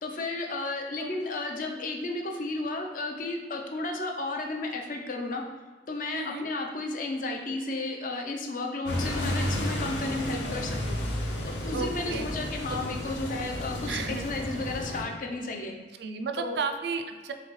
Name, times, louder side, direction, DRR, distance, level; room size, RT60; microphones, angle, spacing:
voice 1, 0.0-5.4 5.9-11.0 11.5-15.7 16.4-16.6, left 2 dB, 50° left, 2 dB, 0.5 m, -33 dB
voice 2, 6.1-6.5 11.7-12.3 13.9-14.3 16.0-17.3, right 5 dB, 65° right, 7 dB, 0.3 m, -33 dB
sound 1, 8.9-15.0, left 1 dB, 85° left, 0.7 m, -32 dB
3.9 x 3.2 x 3.1 m, 1.5 s
head